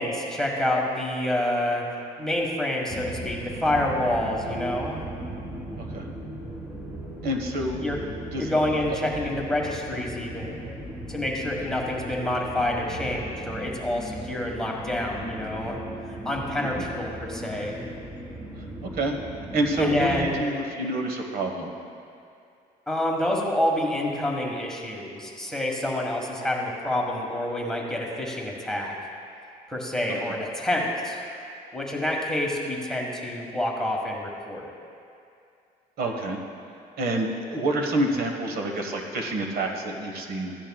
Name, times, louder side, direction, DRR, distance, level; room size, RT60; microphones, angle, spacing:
voice 1, 0.0-1.9 2.2-5.1 7.8-8.0 8.4-10.8 11.1-15.8 16.1-17.9 19.8-20.4 22.9-28.9 29.7-31.2 31.7-34.7, left 1 dB, 5° left, -2 dB, 1.5 m, -28 dB
sound 1, 2.9-20.4, right 1 dB, 10° right, 1.7 m, -37 dB
voice 2, 5.8-6.1 7.2-7.8 8.3-8.5 16.6-16.9 18.8-19.2 19.5-21.7 30.1-30.2 36.0-36.4 37.0-40.6, right 1 dB, 60° right, 2 dB, 1.4 m, -28 dB
15.5 x 10.0 x 2.3 m, 2.5 s
cardioid pair, 110°, 17 cm